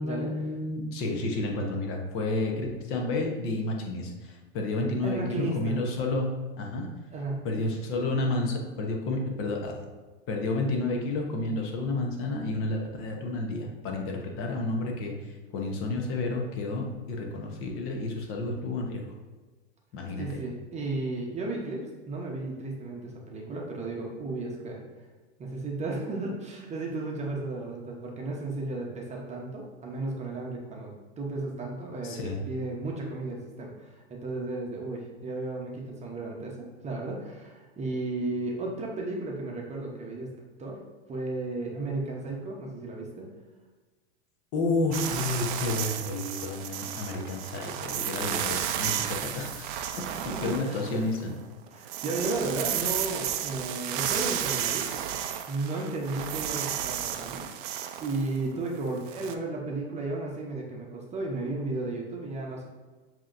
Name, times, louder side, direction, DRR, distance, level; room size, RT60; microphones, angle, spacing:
voice 1, 0.0-6.3 6.6-6.9 7.4-9.8 10.3-19.1 19.9-20.4 32.0-32.4 44.5-49.7 50.2-51.3, left 2 dB, 40° left, 1 dB, 0.9 m, -31 dB
voice 2, 5.0-5.8 7.1-7.5 20.2-24.8 25.4-40.3 40.6-40.8 41.1-43.3 50.3-50.8 51.7-54.9 55.5-57.5 58.0-62.7, right 2 dB, 20° right, -1 dB, 0.8 m, -34 dB
sound 1, 44.9-51.3 51.7-59.3, right 10 dB, 50° right, 0.5 m, -33 dB
7.2 x 2.9 x 2.5 m, 1.3 s
hypercardioid pair, 105°, 34 cm